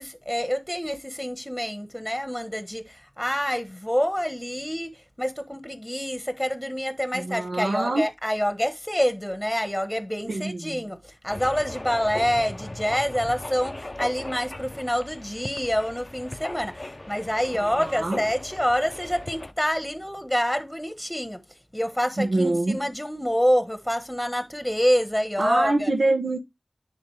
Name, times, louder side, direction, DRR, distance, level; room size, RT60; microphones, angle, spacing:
voice 1, 0.0-21.4 21.7-25.9, equal, 5° left, 1.2 m, -27 dB
voice 2, 7.1-8.0 10.3-10.8 17.5-18.2 22.2-22.8 25.4-26.4, right 2 dB, 85° right, 1.2 m, -25 dB
sound 1, 11.3-19.5, left 1 dB, 40° left, 0.6 m, -38 dB
10.5 x 3.7 x 3.2 m
wide cardioid pair, 50°, 0 cm